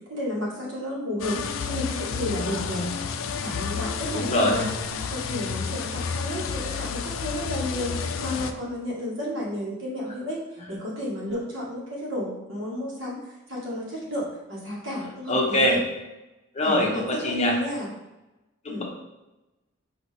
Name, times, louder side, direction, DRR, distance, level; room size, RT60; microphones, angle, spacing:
voice 1, 0.1-2.9 3.4-4.7 5.1-10.4 10.7-15.8 16.6-17.9 18.7-18.8, left 1 dB, 65° right, -4 dB, 1.4 m, -32 dB
sound 1, 1.2-8.5, left 6 dB, 80° left, 0.4 m, -31 dB
voice 2, 4.1-4.5 15.3-15.8 16.5-17.5 18.6-18.8, left 1 dB, 35° left, -1 dB, 0.9 m, -23 dB
5.6 x 2.9 x 3.3 m, 1.0 s
head